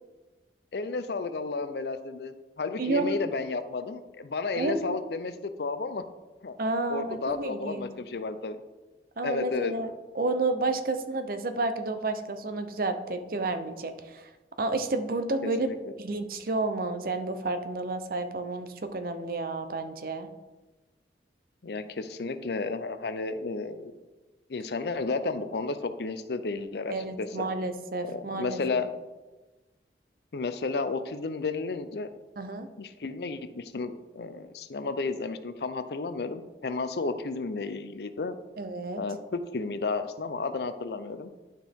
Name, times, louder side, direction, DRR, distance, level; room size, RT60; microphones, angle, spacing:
voice 1, 0.7-6.0 6.4-6.5 6.9-8.6 9.2-9.7 15.6-15.8 21.6-23.9 24.5-27.5 28.0-28.9 30.3-32.1 32.8-38.4 39.0-41.3, left 3 dB, 65° left, 11 dB, 0.5 m, -32 dB
voice 2, 2.8-3.2 4.5-4.9 6.6-7.9 9.2-14.3 14.6-15.7 16.0-20.3 26.9-28.9 32.4-32.7 38.6-39.0, right 2 dB, 55° right, 9 dB, 0.6 m, -31 dB
11.5 x 4.5 x 3.5 m, 1.2 s
head